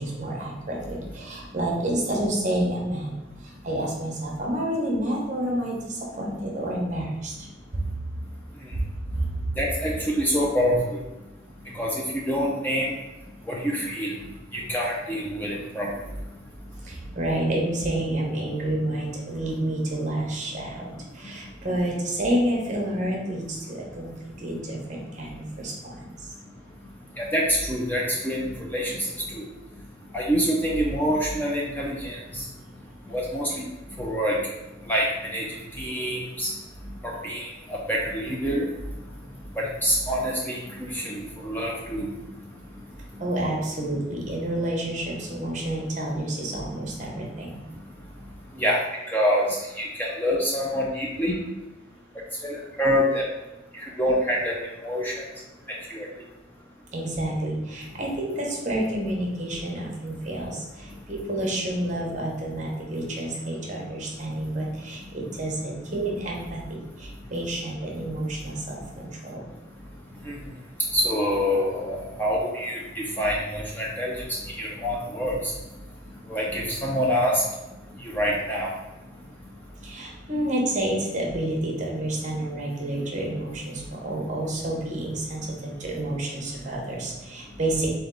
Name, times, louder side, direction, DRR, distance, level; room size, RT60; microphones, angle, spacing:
voice 1, 0.0-3.1 3.6-7.3 16.9-23.6 24.0-24.1 24.4-26.1 43.2-45.0 45.3-47.6 56.9-60.6 61.1-69.4 79.8-88.0, right 1 dB, 40° right, -1 dB, 0.9 m, -29 dB
voice 2, 9.6-11.0 11.7-12.9 13.5-14.1 14.5-15.9 27.2-29.1 29.3-29.4 30.1-32.2 33.1-33.7 34.0-34.4 34.9-35.1 35.3-35.4 35.8-36.5 37.0-38.7 39.6-40.6 40.9-42.1 48.6-48.8 49.1-49.5 49.8-51.3 52.4-53.2 54.0-54.5 54.8-55.2 55.9-56.1 70.2-70.3 70.9-74.1 74.6-75.4 76.3-77.4 78.0-78.7, equal, 10° left, -3 dB, 0.5 m, -26 dB
4.0 x 3.4 x 3.7 m, 1.0 s
head